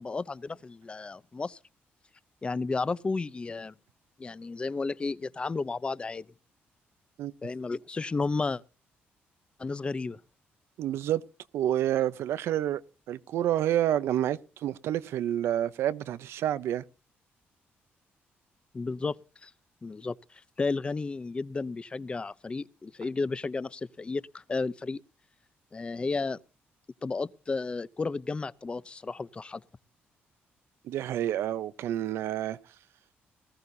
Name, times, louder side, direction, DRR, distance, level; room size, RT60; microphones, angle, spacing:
voice 1, 0.0-1.6 2.4-3.7 4.2-6.3 7.4-8.6 9.6-10.2 18.7-19.1 19.4-19.5 19.8-25.0 25.7-26.4 27.0-29.6, left 3 dB, 25° left, 0.6 m, -32 dB
voice 2, 10.8-11.2 11.5-12.8 13.1-16.8 30.8-32.6, right 12 dB, 85° right, 0.8 m, -28 dB
19.5 x 14.0 x 2.7 m
cardioid pair, 105°, 4 cm